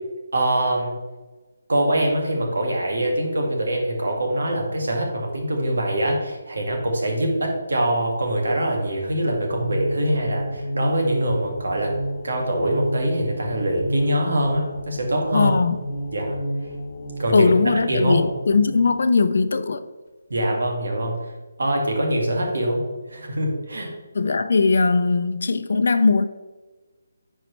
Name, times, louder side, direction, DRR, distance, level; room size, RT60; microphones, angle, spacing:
voice 1, 0.3-0.9 1.7-11.9 12.2-15.5 16.1-16.4 17.2-17.5 17.8-18.2 20.3-21.1 21.6-22.8 23.1-23.9, right 1 dB, 80° right, 1 dB, 1.9 m, -23 dB
sound 1, 9.5-18.9, equal, 50° left, 1.1 m, -31 dB
voice 2, 15.3-15.8 17.3-19.8 24.1-26.3, left 4 dB, 65° left, 10 dB, 0.5 m, -19 dB
9.8 x 4.6 x 3.2 m, 1.2 s
figure-of-eight pair, 160°, 0 cm